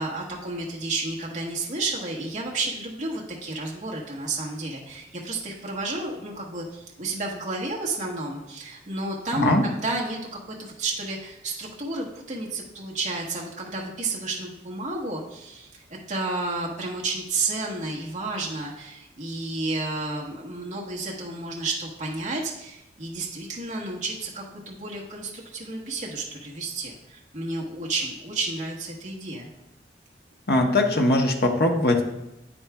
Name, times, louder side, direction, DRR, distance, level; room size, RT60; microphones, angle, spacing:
voice 1, 0.0-10.2 10.4-15.8 16.1-29.5, right 3 dB, 45° right, -3 dB, 1.2 m, -31 dB
voice 2, 9.3-9.6 30.5-32.0, left 1 dB, 60° left, 2 dB, 0.9 m, -21 dB
8.8 x 8.4 x 2.3 m, 0.89 s
head